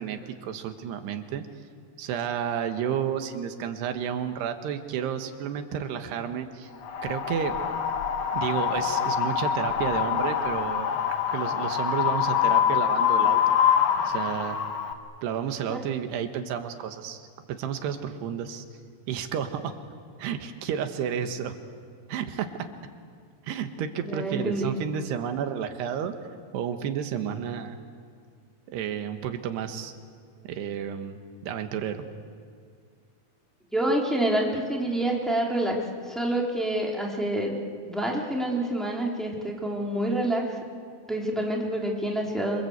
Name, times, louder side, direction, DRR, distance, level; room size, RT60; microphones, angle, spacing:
voice 1, 0.0-1.4 2.0-6.7 7.0-7.6 8.3-11.0 11.3-13.5 14.1-14.6 15.2-18.7 19.1-19.8 20.2-21.6 22.1-22.7 23.5-26.2 26.5-27.8 28.7-29.9 30.5-32.1, right 8 dB, 80° right, 7 dB, 3.5 m, -31 dB
Wind, 6.8-14.9, left 8 dB, 55° left, 2.1 m, -25 dB
voice 2, 24.0-24.7 33.7-35.8 36.1-37.6 37.8-40.6 41.1-42.6, right 1 dB, ahead, -2 dB, 3.0 m, -27 dB
28.0 x 25.5 x 8.1 m, 2.1 s
omnidirectional pair, 4.7 m